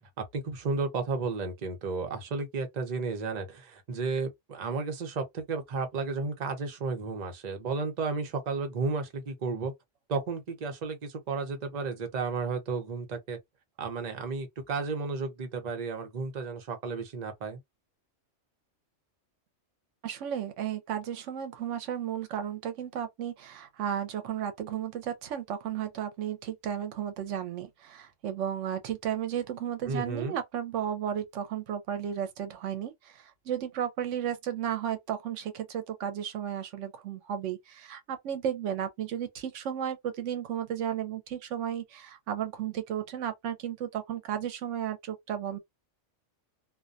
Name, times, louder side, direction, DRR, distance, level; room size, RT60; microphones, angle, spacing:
voice 1, 0.2-9.7 10.1-13.4 13.8-17.6 29.9-30.4, right 4 dB, 40° right, 0.7 m, -33 dB
voice 2, 20.0-45.6, right 9 dB, 85° right, 0.9 m, -34 dB
2.4 x 2.2 x 2.5 m
omnidirectional pair, 1.3 m